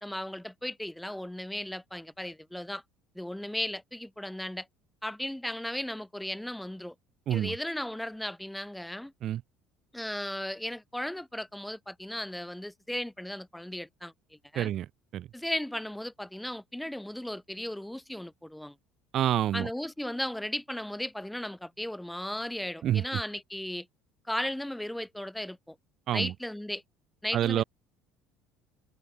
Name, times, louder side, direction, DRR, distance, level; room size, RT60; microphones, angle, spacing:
voice 1, 0.0-2.8 3.2-4.7 5.0-7.0 7.3-9.1 9.9-14.7 15.3-18.8 19.5-23.9 24.3-25.8 26.1-26.8 27.2-27.6, left 1 dB, 5° left, 1.8 m, -36 dB
voice 2, 14.6-14.9 15.1-15.3 19.1-19.7 22.8-23.0 26.1-26.3 27.3-27.6, right 11 dB, 50° right, 0.3 m, -27 dB
open air
figure-of-eight pair, 60°, 0 cm